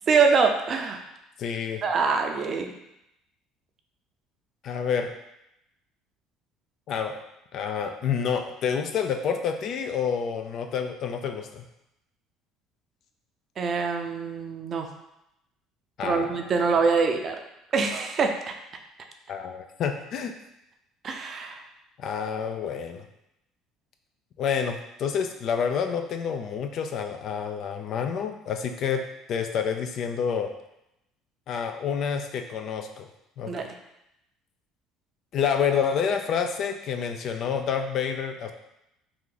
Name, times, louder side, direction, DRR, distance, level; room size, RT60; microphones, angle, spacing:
voice 1, 0.1-1.0 1.8-2.7 13.6-14.9 16.0-17.4 17.7-18.5 21.0-21.6 33.5-33.7, right 5 dB, 45° right, 4 dB, 0.5 m, -24 dB
voice 2, 1.4-1.8 4.6-5.1 6.9-7.2 7.5-11.7 16.0-16.4 19.3-20.3 22.0-23.1 24.4-29.0 29.3-30.5 31.5-33.1 33.4-33.7 35.3-38.5, left 7 dB, 55° left, 6 dB, 0.4 m, -28 dB
2.9 x 2.5 x 3.8 m, 0.85 s
supercardioid pair, 85°, 0 cm